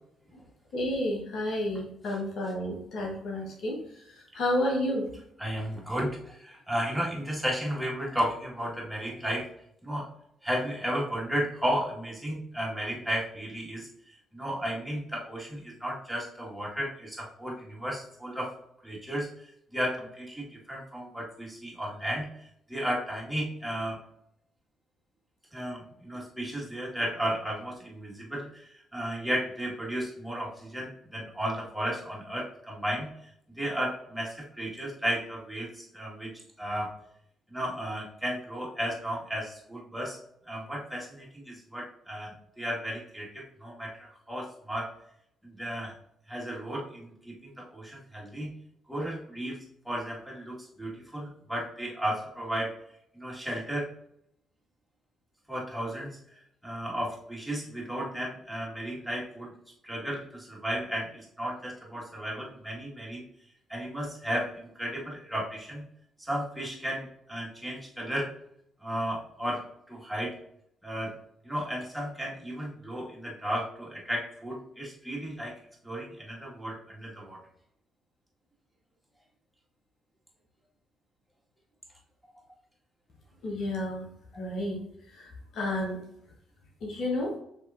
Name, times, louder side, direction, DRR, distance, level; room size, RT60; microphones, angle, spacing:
voice 1, 0.7-3.8 4.0-5.1 83.4-84.1 84.3-84.8 85.1-86.0 86.8-87.4, left 1 dB, 60° left, 0 dB, 1.0 m, -31 dB
voice 2, 5.4-9.5 9.8-10.1 10.4-18.5 18.8-19.3 19.7-22.3 22.7-24.0 25.5-33.1 33.6-36.9 37.5-40.2 40.5-44.9 45.4-45.9 46.3-48.5 48.9-49.6 49.9-52.7 53.1-53.9 55.5-56.2 56.6-59.5 59.8-63.2 63.7-65.8 66.2-68.3 68.8-69.6 69.9-70.3 70.8-71.2 71.4-75.6 75.8-77.4, equal, ahead, -3 dB, 1.8 m, -34 dB
6.7 x 3.0 x 2.5 m, 0.73 s
figure-of-eight pair, 45°, 0 cm